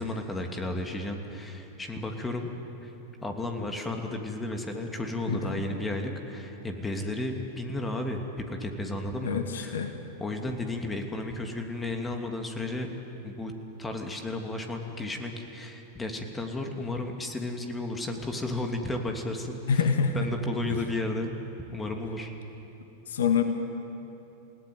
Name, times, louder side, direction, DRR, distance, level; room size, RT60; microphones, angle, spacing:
voice 1, 0.0-2.5 2.8-2.9 3.2-9.8 10.2-12.9 13.2-13.5 13.8-19.8 20.1-21.3 21.7-22.3, left 2 dB, 10° left, 4 dB, 2.8 m, -33 dB
voice 2, 5.3-5.6 9.2-9.9 19.7-20.2 23.1-23.4, left 6 dB, 65° left, 6 dB, 1.9 m, -26 dB
29.5 x 17.5 x 9.5 m, 3.0 s
figure-of-eight pair, 90°, 0 cm